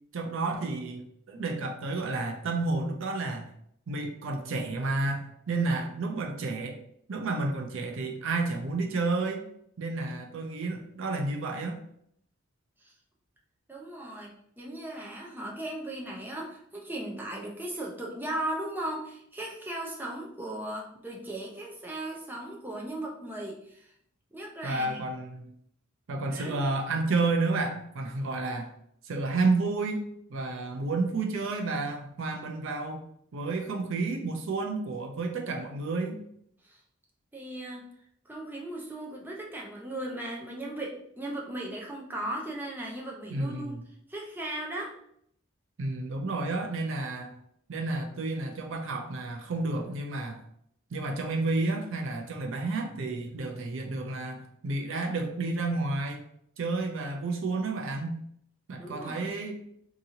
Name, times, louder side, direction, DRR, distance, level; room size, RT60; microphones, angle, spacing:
voice 1, 0.1-3.5 3.9-6.8 7.1-9.4 9.8-11.8 24.6-25.5 26.1-28.7 29.0-33.0 33.3-36.2 43.3-43.8 45.8-47.4 47.7-50.4 50.9-56.2 56.6-58.2 58.7-59.6, right 3 dB, 65° right, 4 dB, 0.5 m, -31 dB
voice 2, 13.7-23.9 24.3-25.0 26.3-26.7 36.6-36.8 37.3-37.8 38.3-43.8 44.1-44.9 58.8-59.3, right 1 dB, 10° right, -2 dB, 0.6 m, -37 dB
3.7 x 2.9 x 2.7 m, 0.69 s
head